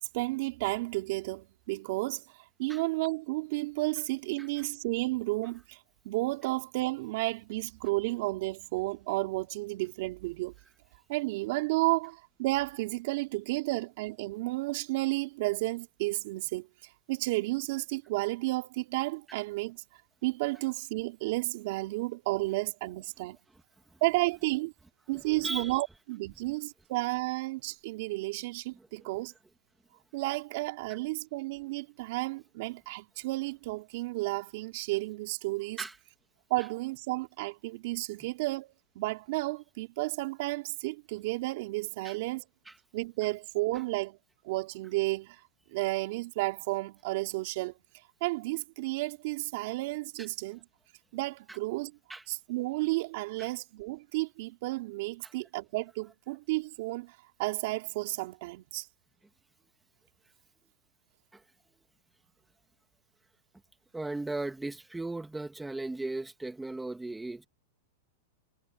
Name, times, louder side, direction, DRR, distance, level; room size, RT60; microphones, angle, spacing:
voice 1, 0.1-2.2 2.6-5.8 6.0-10.5 11.1-16.7 17.1-19.8 20.2-23.4 24.0-24.7 25.1-29.3 30.1-35.8 36.5-42.4 42.9-44.2 44.4-45.4 45.7-47.8 48.2-50.6 51.1-51.9 52.3-57.1 57.4-58.8, right 21 dB, 50° right, 4.9 m, -32 dB
voice 2, 25.1-25.8 28.7-29.1 30.9-31.0 35.8-36.0 42.0-42.2 42.7-42.8 50.2-50.3 51.5-51.6 52.1-52.2 53.4-53.5 55.2-55.3 61.3-61.4 63.9-67.5, right 2 dB, 5° right, 2.6 m, -37 dB
supercardioid pair, 160°, 0 cm